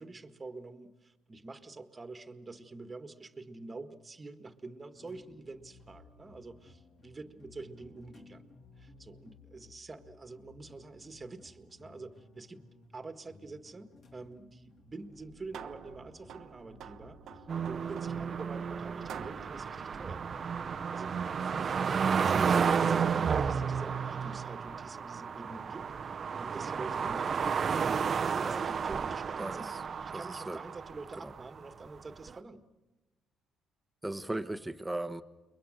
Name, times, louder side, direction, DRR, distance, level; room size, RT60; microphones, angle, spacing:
voice 1, 0.0-8.4 8.8-12.6 12.9-17.2 17.7-20.5 20.9-27.5 28.2-29.7 30.0-32.6, right 3 dB, 25° right, 8 dB, 1.6 m, -46 dB
sound 1, 4.9-21.8, left 3 dB, 60° left, 3.0 m, -58 dB
sound 2, 15.1-21.0, right 9 dB, 70° right, 1.2 m, -49 dB
sound 3, 17.5-31.6 32.3-32.4, right 6 dB, 45° right, 0.8 m, -32 dB
voice 2, 29.4-29.8 30.1-30.6 31.2-31.3 34.0-35.2, right 2 dB, 10° right, 10 dB, 1.2 m, -37 dB
29.5 x 22.0 x 6.6 m, 1.1 s
cardioid pair, 90°, 0 cm